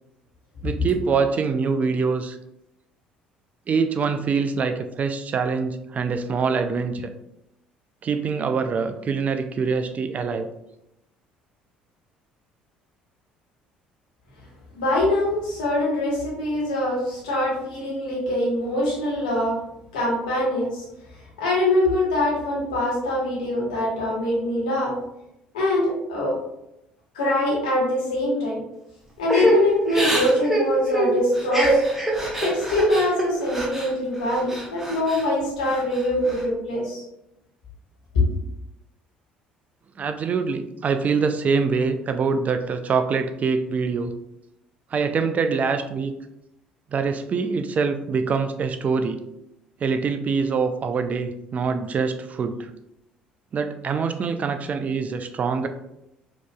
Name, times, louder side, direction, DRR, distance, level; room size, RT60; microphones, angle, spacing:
voice 1, 0.6-2.4 3.7-7.1 8.0-10.5 40.0-44.1 44.9-46.1 46.9-49.2 49.8-52.7 53.5-55.7, right 5 dB, 35° right, 8 dB, 0.3 m, -24 dB
voice 2, 14.7-19.6 19.9-20.8 21.4-24.9 25.5-26.3 27.1-28.6 29.2-31.8 32.4-37.0 38.1-38.2, left 1 dB, 70° left, -5 dB, 1.3 m, -23 dB
Crying sobbing / Breathing, 29.3-33.9 34.3-35.2 35.6-36.4, right 1 dB, 5° right, 1.0 m, -24 dB
5.0 x 2.8 x 2.2 m, 0.84 s
figure-of-eight pair, 55°, 4 cm